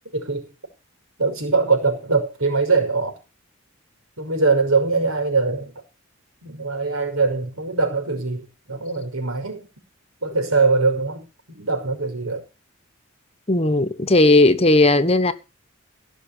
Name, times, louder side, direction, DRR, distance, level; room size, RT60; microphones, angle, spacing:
voice 1, 0.1-0.5 1.2-3.2 4.2-5.7 6.4-9.7 10.2-12.4, right 4 dB, 75° right, 5.7 m, -22 dB
voice 2, 13.5-15.3, left 2 dB, 30° left, 1.2 m, -16 dB
17.0 x 6.5 x 8.7 m
head